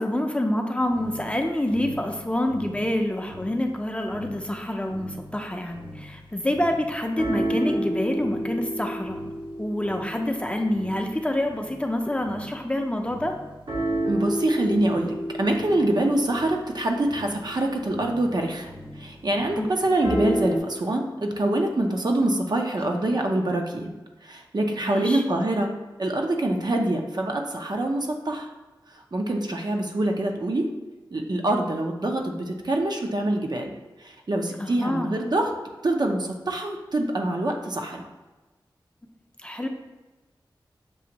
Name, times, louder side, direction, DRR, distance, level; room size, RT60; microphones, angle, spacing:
voice 1, 0.0-9.2 9.6-13.4 19.5-19.7 24.8-25.2 34.6-35.1 39.4-39.7, left 1 dB, 15° left, 3 dB, 0.5 m, -27 dB
sound 1, 0.9-3.8 4.1-12.7 13.0-20.6, right 1 dB, 80° right, 1.1 m, -33 dB
voice 2, 14.1-18.7 19.0-23.9 24.2-25.7 26.0-28.5 29.1-30.6 31.1-33.7 34.3-35.5 35.8-38.1, right 1 dB, 55° right, 2 dB, 0.6 m, -25 dB
6.2 x 2.5 x 2.9 m, 1.1 s
cardioid pair, 45°, 9 cm